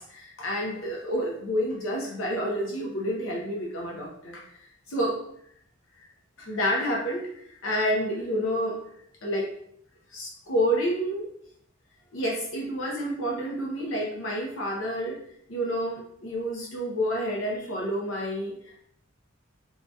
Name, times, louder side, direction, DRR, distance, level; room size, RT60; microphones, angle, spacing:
voice 1, 0.0-4.6 4.9-5.2 6.0-6.1 6.4-8.8 9.2-9.5 10.1-11.3 12.1-15.2 15.5-18.9, equal, 70° left, -3 dB, 0.7 m, -29 dB
4.7 x 2.7 x 2.2 m, 0.70 s
head